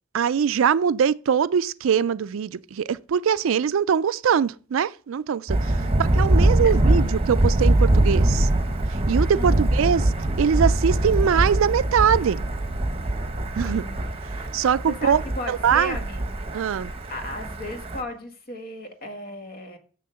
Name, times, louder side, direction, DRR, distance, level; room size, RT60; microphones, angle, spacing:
voice 1, 0.1-8.5 9.1-10.1 10.4-12.4 13.6-13.8 14.5-15.2 15.5-16.0 16.5-16.9, right 7 dB, 90° right, 0.4 m, -22 dB
Thunder, 5.5-18.0, right 1 dB, 30° right, 0.9 m, -23 dB
voice 2, 5.8-6.2 6.6-6.7 9.3-9.7 13.6-14.1 14.9-16.4 17.1-19.8, left 1 dB, 50° left, 1.7 m, -35 dB
7.0 x 6.4 x 6.8 m
head